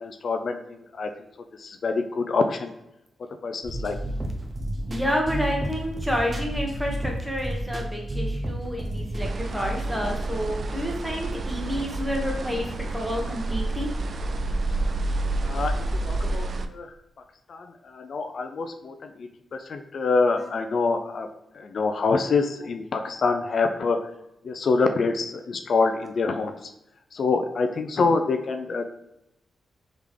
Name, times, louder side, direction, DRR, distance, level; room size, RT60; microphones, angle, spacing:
voice 1, 0.0-0.6 0.9-1.1 1.6-2.7 3.4-3.9 15.4-15.8 16.0-16.9 17.5-19.3 19.7-21.3 21.6-24.0 24.4-26.7 27.1-28.8, left 4 dB, 65° left, 6 dB, 0.3 m, -25 dB
sound 1, 3.6-9.3, right 1 dB, 35° right, 0.8 m, -31 dB
voice 2, 4.9-13.9 20.4-20.5, equal, 10° right, 0 dB, 1.2 m, -29 dB
sound 2, 9.2-16.7, right 2 dB, 55° right, 0.3 m, -29 dB
3.6 x 3.3 x 3.2 m, 0.86 s
cardioid pair, 60°, 0 cm